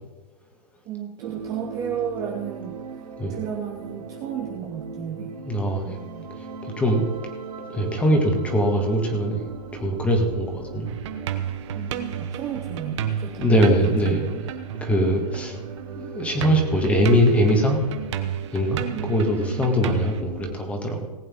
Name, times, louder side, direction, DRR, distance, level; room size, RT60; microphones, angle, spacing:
voice 1, 0.9-2.8 3.3-5.4 5.8-6.3 8.3-8.4 11.7-14.4 18.9-20.0, right 8 dB, 15° right, 1 dB, 0.9 m, -34 dB
sound 1, 1.2-20.5, right 5 dB, 65° right, 3.5 m, -38 dB
voice 2, 5.5-6.0 6.8-7.0 7.7-9.4 9.7-10.9 13.4-14.4 14.8-15.6 16.0-17.8 18.5-21.1, equal, 5° left, 2 dB, 1.7 m, -22 dB
sound 2, 10.9-15.9 16.2-20.2, right 9 dB, 45° right, 1.1 m, -31 dB
19.5 x 8.5 x 3.7 m, 1.2 s
hypercardioid pair, 160°, 21 cm